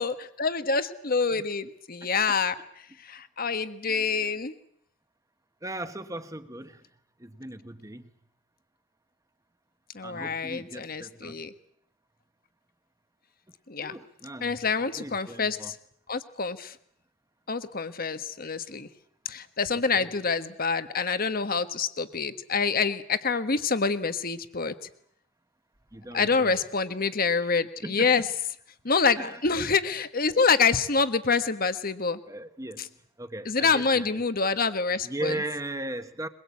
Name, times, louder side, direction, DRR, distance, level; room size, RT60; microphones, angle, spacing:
voice 1, 0.0-2.5 3.0-4.5 9.9-11.5 13.7-13.9 14.4-15.7 16.1-16.8 17.5-18.9 19.3-24.7 26.1-28.2 28.8-32.2 33.4-35.3, left 5 dB, 45° left, 11 dB, 1.3 m, -26 dB
voice 2, 2.0-2.4 3.9-4.3 5.6-6.8 7.2-8.1 10.0-11.4 13.8-15.7 19.9-20.1 25.9-26.6 27.8-28.3 29.1-29.6 32.3-34.2 35.0-36.3, right 1 dB, 15° right, 9 dB, 1.4 m, -38 dB
23.0 x 22.0 x 8.4 m, 0.68 s
head